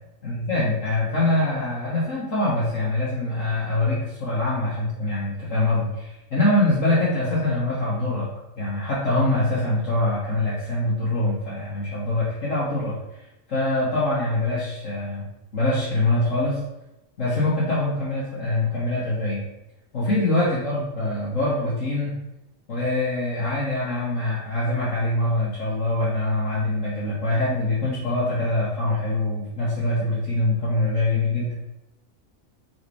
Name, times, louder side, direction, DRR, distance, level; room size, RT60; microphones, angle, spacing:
voice 1, 0.2-8.3 8.6-13.0 13.5-15.3 15.5-16.6 17.2-19.4 19.9-22.2 22.7-31.5, left 2 dB, 65° left, -9 dB, 1.9 m, -24 dB
4.8 x 4.3 x 4.8 m, 0.93 s
omnidirectional pair, 1.5 m